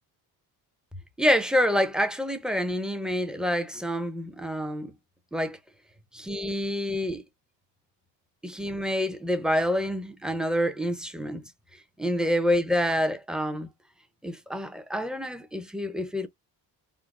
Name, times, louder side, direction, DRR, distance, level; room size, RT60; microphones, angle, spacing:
voice 1, 1.2-4.9 5.3-5.6 6.1-7.2 8.4-11.4 12.0-13.7 14.2-16.3, equal, ahead, 0.5 m, -27 dB
3.7 x 2.0 x 2.3 m
cardioid pair, 85°, 43 cm